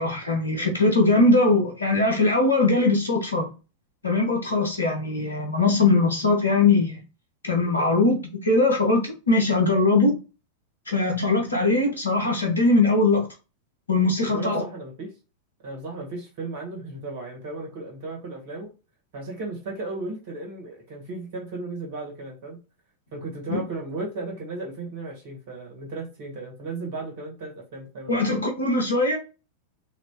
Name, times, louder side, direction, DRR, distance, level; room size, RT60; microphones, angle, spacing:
voice 1, 0.0-3.5 4.0-7.0 7.4-10.2 10.9-13.3 13.9-14.6 23.5-23.6 28.1-29.2, left 2 dB, 80° left, 1.2 m, -21 dB
voice 2, 14.3-15.1 15.6-18.7 19.1-22.6 23.1-28.2, right 3 dB, 50° right, 1.9 m, -35 dB
4.0 x 3.2 x 2.9 m
figure-of-eight pair, 90°, 0 cm